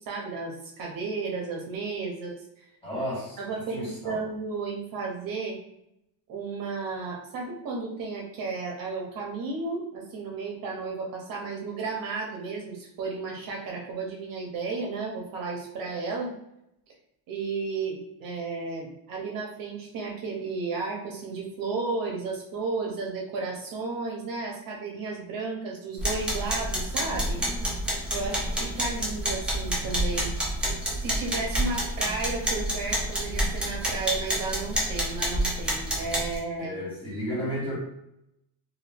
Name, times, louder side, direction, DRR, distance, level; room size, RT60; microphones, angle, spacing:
voice 1, 0.1-2.4 3.4-5.6 6.3-16.3 17.3-27.4 28.1-30.3 31.0-36.9, right 4 dB, 55° right, 0 dB, 0.7 m, -33 dB
voice 2, 2.8-3.4 3.7-4.2 36.6-37.8, equal, 15° left, -8 dB, 1.3 m, -32 dB
sound 1, 26.0-36.4, right 1 dB, 5° right, 0.5 m, -28 dB
2.6 x 2.6 x 3.3 m, 0.82 s
cardioid pair, 175°, 40 cm